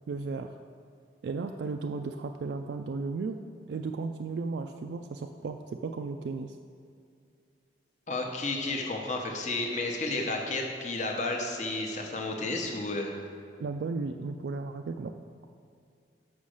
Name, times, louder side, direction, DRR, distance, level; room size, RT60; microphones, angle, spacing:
voice 1, 0.1-0.6 1.2-3.4 3.7-6.6 13.6-15.1, right 4 dB, 65° right, 5 dB, 0.3 m, -35 dB
voice 2, 8.1-13.1, left 2 dB, 40° left, 1 dB, 0.8 m, -32 dB
6.2 x 5.6 x 6.4 m, 2.3 s
head